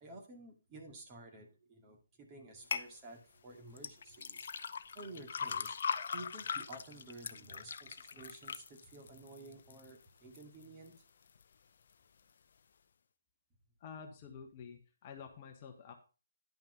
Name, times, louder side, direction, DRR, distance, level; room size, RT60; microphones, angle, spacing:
voice 1, 0.0-4.5 4.9-5.8 6.1-10.9, right 2 dB, 20° right, 1 dB, 2.2 m, -52 dB
sound 1, 2.7-2.9 3.8-9.9 10.3-10.9 11.4-11.5, left 6 dB, 45° left, 0.6 m, -40 dB
voice 2, 13.8-15.9, left 6 dB, 30° left, 4 dB, 1.2 m, -49 dB
10.5 x 5.8 x 5.2 m, 0.33 s
figure-of-eight pair, 140°, 0 cm